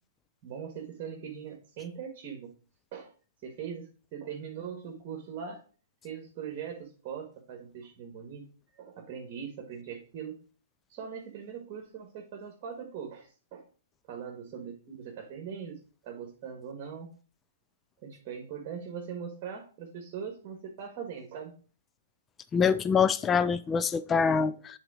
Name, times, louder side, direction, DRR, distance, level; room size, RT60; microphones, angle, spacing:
voice 1, 0.4-2.5 2.9-3.1 3.4-5.6 6.0-8.4 8.7-10.4 10.9-13.6 14.1-17.1 18.0-21.5, right 7 dB, 35° right, 1.6 m, -41 dB
voice 2, 22.5-24.8, left 6 dB, 15° left, 0.4 m, -25 dB
7.3 x 4.0 x 4.8 m
hypercardioid pair, 140°, 0 cm